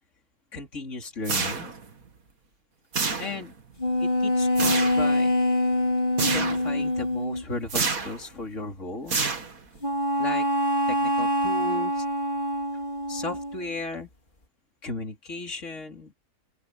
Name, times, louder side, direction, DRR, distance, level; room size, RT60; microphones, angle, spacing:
voice 1, 0.5-1.7 3.2-3.5 4.0-5.3 6.2-9.2 10.2-10.5 10.9-12.1 13.1-14.1 14.8-16.1, left 3 dB, 50° left, 3.9 m, -35 dB
sound 1, 1.2-1.9 2.9-3.6 4.6-5.1 6.2-6.7 7.7-8.2 9.1-9.8, right 4 dB, 65° right, 2.6 m, -28 dB
sound 2, 3.8-7.4 9.8-13.7, left 1 dB, 30° left, 2.8 m, -25 dB
open air
omnidirectional pair, 1.6 m